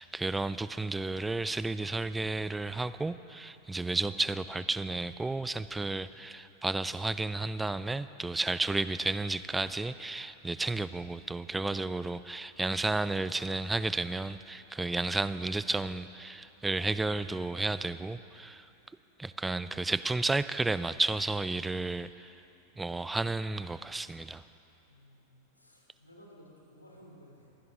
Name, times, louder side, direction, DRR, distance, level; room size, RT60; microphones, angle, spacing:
voice 1, 0.0-18.6 19.2-22.3 22.8-24.4, right 2 dB, 10° right, 15 dB, 0.5 m, -32 dB
voice 2, 24.9-27.5, equal, 85° left, -1 dB, 3.1 m, -56 dB
23.0 x 16.5 x 3.8 m, 2.8 s
figure-of-eight pair, 90°, 0 cm